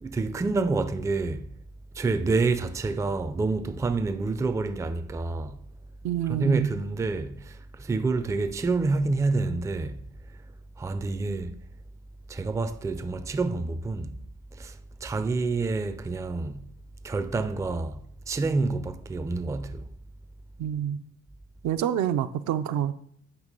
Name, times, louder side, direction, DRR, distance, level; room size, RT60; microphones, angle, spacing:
voice 1, 0.0-1.5 2.0-5.6 6.3-10.0 10.8-11.6 12.3-14.2 14.5-16.6 17.0-18.0 18.3-19.9, right 3 dB, 10° right, 0.3 m, -28 dB
voice 2, 6.0-6.7 20.6-21.0 21.6-22.9, right 10 dB, 70° right, 0.5 m, -27 dB
8.2 x 2.9 x 5.3 m
cardioid pair, 90°, 30 cm